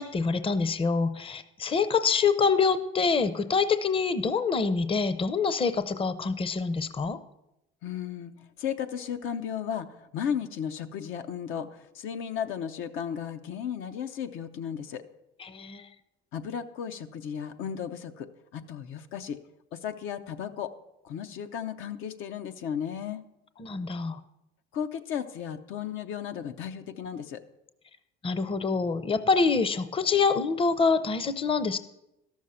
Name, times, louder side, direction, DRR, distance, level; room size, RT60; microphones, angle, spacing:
voice 1, 0.0-7.2 15.4-15.8 23.6-24.2 28.2-31.8, left 5 dB, 25° left, 13 dB, 0.6 m, -26 dB
voice 2, 7.8-8.3 8.6-9.9 10.1-15.0 16.3-19.4 19.7-20.7 21.0-23.2 24.7-27.4, left 8 dB, 75° left, 8 dB, 0.7 m, -34 dB
12.5 x 6.4 x 5.6 m, 0.87 s
supercardioid pair, 90°, 21 cm